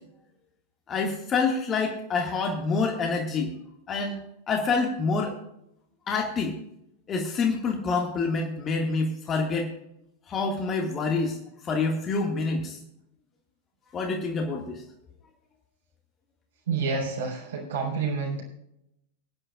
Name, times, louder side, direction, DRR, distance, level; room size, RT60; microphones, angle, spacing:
voice 1, 0.9-3.5 3.9-5.4 6.1-6.5 7.1-9.7 10.3-11.4 11.6-12.8 13.9-14.8, left 4 dB, 25° left, 1 dB, 1.9 m, -27 dB
voice 2, 16.7-18.4, right 4 dB, 65° right, -3 dB, 4.3 m, -28 dB
24.0 x 9.7 x 2.4 m, 0.81 s
figure-of-eight pair, 95°, 0 cm